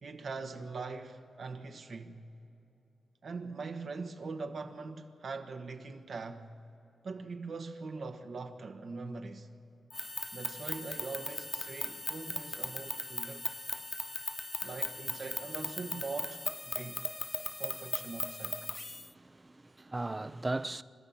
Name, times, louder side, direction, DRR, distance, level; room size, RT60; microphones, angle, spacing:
voice 1, 0.0-2.2 3.2-6.5 7.0-9.5 10.3-13.5 14.6-17.0 17.6-18.6, right 4 dB, 65° right, 1.4 m, -42 dB
sound 1, 9.9-19.1, left 2 dB, 25° left, 0.5 m, -38 dB
voice 2, 18.9-20.8, right 2 dB, 25° right, 0.6 m, -37 dB
29.5 x 13.0 x 7.2 m
cardioid pair, 60°, 0 cm